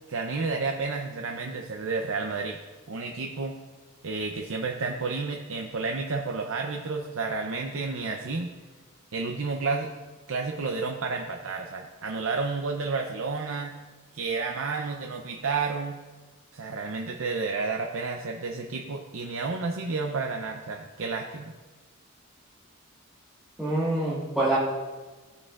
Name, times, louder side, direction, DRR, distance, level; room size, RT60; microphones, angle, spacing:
voice 1, 0.1-2.6 2.9-3.6 4.0-8.5 9.1-9.9 10.3-13.8 14.1-16.0 16.5-21.5, right 4 dB, 65° right, 2 dB, 0.6 m, -31 dB
voice 2, 23.6-24.6, right 2 dB, 5° right, -11 dB, 1.6 m, -25 dB
15.0 x 6.6 x 2.4 m, 1.3 s
head